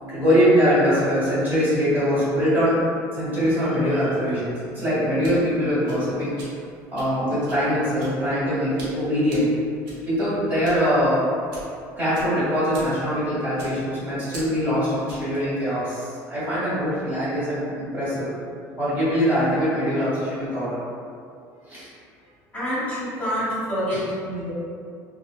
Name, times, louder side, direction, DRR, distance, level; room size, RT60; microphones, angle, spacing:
voice 1, 0.0-2.8 3.1-6.3 6.9-9.5 10.0-11.2 12.0-18.3 18.8-20.8 21.7-21.9 23.9-24.0, equal, 25° right, -11 dB, 1.4 m, -22 dB
sound 1, 4.9-15.4, right 1 dB, 70° right, 0.9 m, -45 dB
voice 2, 22.5-24.5, equal, 20° left, -11 dB, 1.2 m, -27 dB
2.6 x 2.4 x 2.3 m, 2.4 s
supercardioid pair, 100°, 8 cm